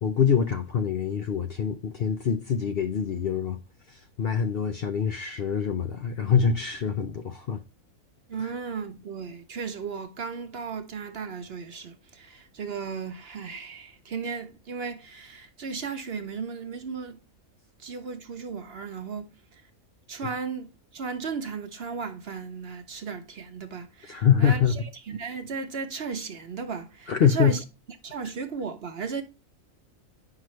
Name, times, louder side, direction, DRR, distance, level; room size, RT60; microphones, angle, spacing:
voice 1, 0.0-3.6 3.9-7.6 8.4-8.5 24.1-24.8 27.1-27.6, left 7 dB, 55° left, 0.7 m, -25 dB
voice 2, 8.3-17.2 17.8-19.3 20.1-24.6 25.1-27.6 28.0-29.2, right 5 dB, 55° right, 0.9 m, -35 dB
9.0 x 6.0 x 3.1 m
omnidirectional pair, 1.5 m